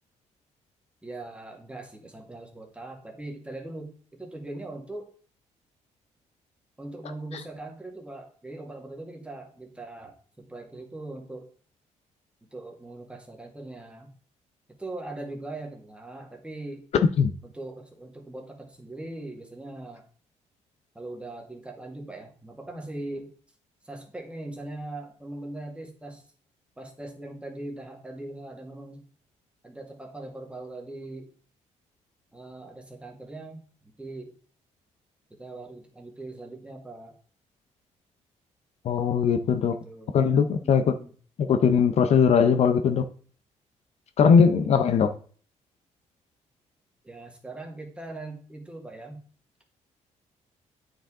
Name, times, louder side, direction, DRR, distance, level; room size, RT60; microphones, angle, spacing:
voice 1, 1.0-5.1 6.8-11.5 12.5-14.1 14.8-16.9 17.4-20.0 21.0-23.3 23.8-26.2 26.8-29.1 29.6-31.3 32.3-34.3 35.3-37.1 39.6-41.1 44.4-45.0 47.0-49.2, right 2 dB, 10° right, 1.8 m, -40 dB
voice 2, 38.8-39.7 40.1-40.8 41.4-43.0 44.2-45.1, left 6 dB, 55° left, 0.6 m, -20 dB
8.9 x 5.0 x 3.7 m
cardioid pair, 110°, 13 cm